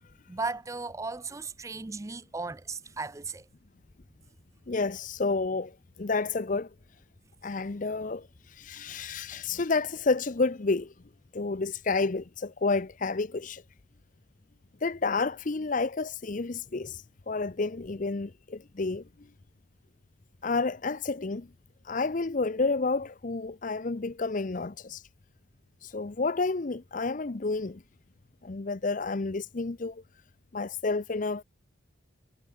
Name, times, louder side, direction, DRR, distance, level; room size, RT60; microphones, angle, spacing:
voice 1, 0.3-3.5, right 3 dB, 15° right, 0.4 m, -36 dB
voice 2, 4.7-6.7 7.4-10.9 11.3-13.6 14.8-19.0 20.4-21.5 21.8-25.1 25.8-27.8 28.4-30.0 30.5-31.4, left 3 dB, 40° left, 0.6 m, -30 dB
head